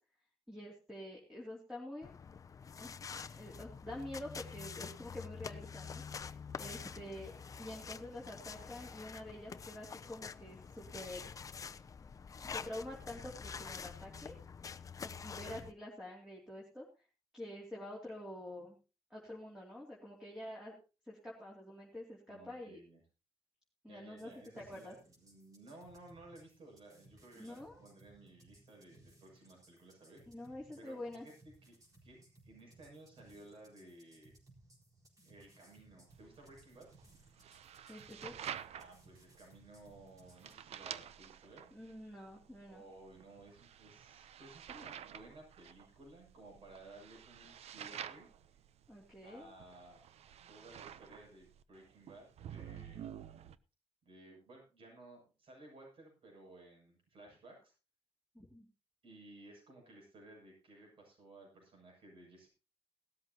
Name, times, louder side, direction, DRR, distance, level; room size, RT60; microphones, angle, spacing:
voice 1, 0.5-2.1 2.8-2.9 3.3-6.0 6.6-7.3 7.6-11.3 12.5-14.3 15.0-16.8 17.3-18.8 19.1-20.7 21.0-22.8 23.8-24.3 24.6-24.9 27.3-27.8 30.3-31.2 37.9-38.3 41.7-42.8 48.9-49.5 58.3-58.7, left 1 dB, 5° right, -2 dB, 2.9 m, -47 dB
sound 1, 2.0-15.7, left 6 dB, 35° left, 0.5 m, -47 dB
voice 2, 22.3-23.0 23.9-31.3 31.6-31.8 32.0-32.2 32.4-34.3 35.2-36.9 38.7-41.6 42.7-48.6 49.2-53.1 54.0-57.7 59.0-62.5, right 2 dB, 60° right, 0 dB, 7.3 m, -57 dB
sound 2, 24.2-40.6, right 1 dB, 35° right, 4.3 m, -64 dB
sound 3, 36.1-53.6, right 9 dB, 85° right, 0.7 m, -50 dB
17.5 x 13.0 x 2.9 m, 0.31 s
wide cardioid pair, 160°, 11 cm